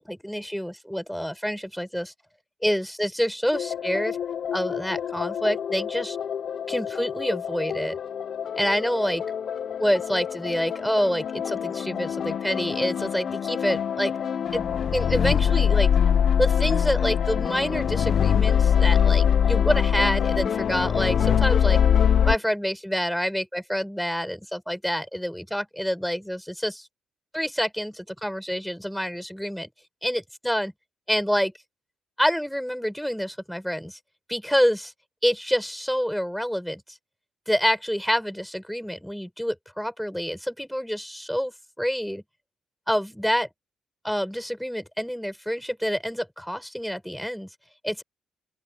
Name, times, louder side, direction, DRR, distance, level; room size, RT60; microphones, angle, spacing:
voice 1, 0.1-2.1 2.6-4.2 4.5-6.2 6.7-8.0 8.5-9.2 9.8-14.1 14.5-14.6 14.9-15.9 16.4-21.8 22.3-26.9 27.3-29.7 30.0-30.7 31.1-31.5 32.2-34.0 34.3-34.9 35.2-37.0 37.5-41.5 41.8-42.2 42.9-43.5 44.0-47.5 47.8-48.0, equal, ahead, 6.8 m, -27 dB
sound 1, 3.5-22.4, left 8 dB, 55° left, 0.9 m, -24 dB
open air
cardioid pair, 90°, 0 cm